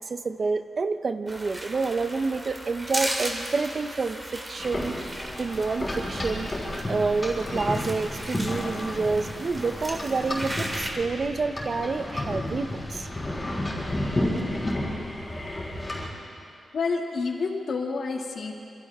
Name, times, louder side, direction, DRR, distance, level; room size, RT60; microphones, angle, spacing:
voice 1, 0.0-6.5 6.9-13.1, right 4 dB, 40° right, 9 dB, 0.8 m, -28 dB
sound 1, 1.3-10.9, right 1 dB, 15° right, 2.7 m, -36 dB
sound 2, 4.6-16.1, left 1 dB, 20° left, 6.0 m, -32 dB
voice 2, 16.4-18.5, left 4 dB, 65° left, 1 dB, 2.4 m, -29 dB
27.0 x 27.0 x 3.7 m, 2.5 s
wide cardioid pair, 120°, 0 cm